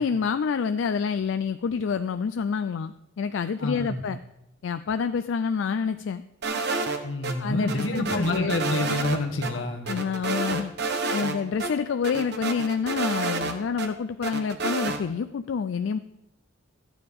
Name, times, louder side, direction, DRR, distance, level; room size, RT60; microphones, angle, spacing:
voice 1, 0.0-4.2 4.6-6.2 7.4-8.5 9.9-10.7 11.1-16.0, left 6 dB, 70° left, 10 dB, 0.4 m, -28 dB
voice 2, 3.6-4.0 7.0-9.9, left 2 dB, 85° left, 4 dB, 1.5 m, -28 dB
sound 1, 6.4-7.3 7.7-9.2 9.4-9.5 9.9-11.3 11.6-11.7 12.0-13.9 14.2-15.0, right 3 dB, 60° right, 1.0 m, -29 dB
13.5 x 9.2 x 3.6 m, 0.86 s
head